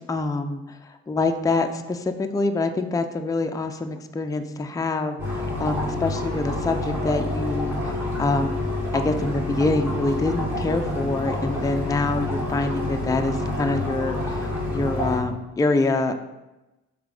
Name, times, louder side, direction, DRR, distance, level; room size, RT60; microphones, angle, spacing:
voice 1, 0.1-7.9 8.2-8.6 8.9-16.1, left 3 dB, 10° left, 6 dB, 0.5 m, -25 dB
sound 1, 5.2-15.2, left 1 dB, 10° right, 2.5 m, -28 dB
7.2 x 3.7 x 4.8 m, 1.0 s
cardioid pair, 90°, 30 cm